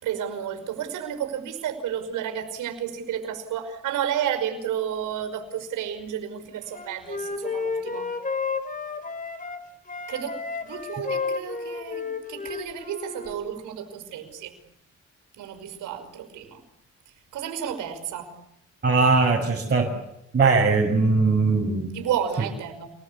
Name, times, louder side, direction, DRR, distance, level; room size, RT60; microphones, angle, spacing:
voice 1, 0.0-8.1 10.1-14.5 15.4-16.6 17.3-18.3 21.9-22.9, right 9 dB, 85° right, 7 dB, 5.6 m, -31 dB
Wind instrument woodwind instrument, 6.7-9.6 9.9-13.4, left 4 dB, 25° left, 4.4 m, -32 dB
voice 2, 18.8-19.9 20.3-21.9, right 4 dB, 35° right, -2 dB, 6.4 m, -20 dB
28.5 x 21.0 x 8.6 m, 0.81 s
cardioid pair, 90°, 30 cm